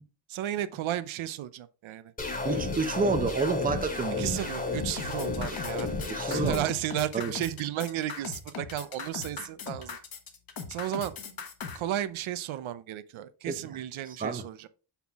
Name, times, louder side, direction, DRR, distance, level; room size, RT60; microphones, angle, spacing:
voice 1, 0.3-2.1 4.2-10.0 10.7-11.1 11.7-14.7, right 12 dB, 85° right, 0.7 m, -33 dB
sound 1, 2.2-6.6, left 3 dB, 20° left, 1.5 m, -32 dB
voice 2, 2.4-4.5 6.1-6.7 7.1-7.3 13.5-13.6 14.1-14.4, right 4 dB, 20° right, 0.7 m, -29 dB
sound 2, 5.0-11.8, left 6 dB, 50° left, 1.2 m, -39 dB
6.0 x 5.7 x 3.5 m
wide cardioid pair, 170°, 47 cm